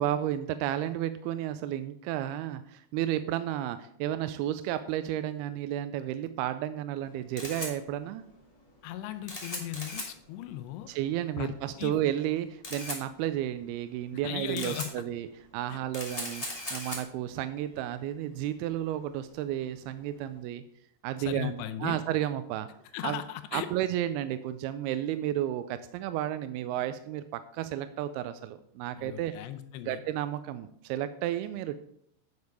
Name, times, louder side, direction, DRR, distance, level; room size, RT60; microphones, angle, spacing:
voice 1, 0.0-8.2 10.9-15.3 15.5-20.6 21.0-22.7 23.0-23.2 23.5-29.3 29.9-31.8, right 12 dB, 85° right, 11 dB, 2.3 m, -32 dB
Camera, 7.0-20.3, left 1 dB, 30° left, 0.6 m, -42 dB
voice 2, 8.8-10.9 11.4-11.5 11.8-12.0 14.2-15.1 15.7-15.8 21.2-22.0 22.9-23.7 29.0-30.0, left 13 dB, 85° left, 9 dB, 2.9 m, -37 dB
9.5 x 6.9 x 4.7 m, 0.68 s
omnidirectional pair, 4.9 m